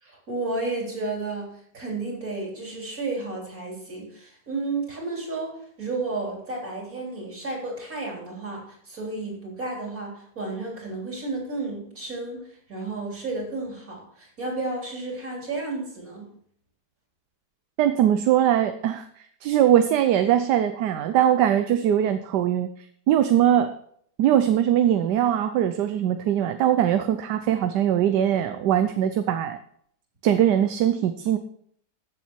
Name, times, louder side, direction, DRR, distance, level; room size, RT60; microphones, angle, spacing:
voice 1, 0.0-16.3, right 3 dB, 50° right, -2 dB, 4.0 m, -32 dB
voice 2, 17.8-22.7 23.1-23.8 24.2-29.6 30.2-31.4, right 10 dB, 75° right, 9 dB, 1.3 m, -21 dB
14.0 x 7.1 x 4.6 m, 0.64 s
omnidirectional pair, 1.9 m